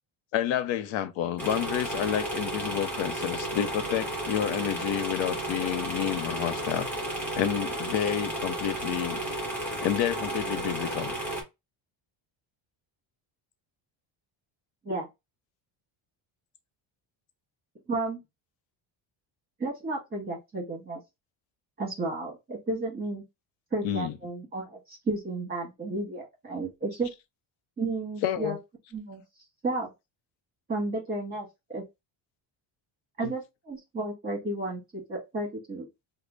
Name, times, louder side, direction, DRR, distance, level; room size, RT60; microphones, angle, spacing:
voice 1, 0.3-6.9 7.4-9.2 9.8-11.1 23.8-24.1 28.2-28.6 33.2-33.3, left 10 dB, 70° left, 0.7 m, -29 dB
sound 1, 1.4-11.4, right 1 dB, 5° left, 0.9 m, -33 dB
voice 2, 17.9-18.2 19.6-21.0 21.8-23.2 23.7-27.1 27.8-28.6 28.9-29.2 29.6-29.9 30.7-31.8 33.2-35.9, right 2 dB, 20° right, 1.6 m, -32 dB
3.2 x 2.1 x 3.6 m
cardioid pair, 170°, 48 cm